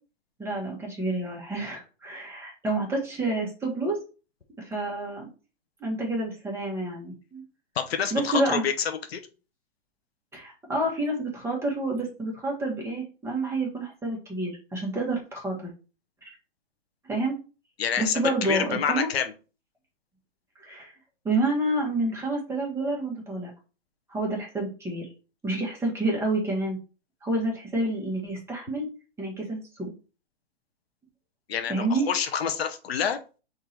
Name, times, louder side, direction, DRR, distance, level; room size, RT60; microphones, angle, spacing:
voice 1, 0.4-4.0 4.6-5.3 5.8-7.4 8.1-8.6 10.3-15.7 17.0-17.4 18.0-19.1 20.6-20.9 21.2-23.5 24.1-25.1 25.4-26.8 27.2-28.9 29.2-29.9 31.7-32.0, right 2 dB, 10° right, -2 dB, 1.3 m, -29 dB
voice 2, 7.8-9.2 17.8-19.3 31.5-33.2, left 7 dB, 75° left, 7 dB, 0.8 m, -27 dB
3.7 x 2.7 x 4.2 m, 0.34 s
hypercardioid pair, 125°, 31 cm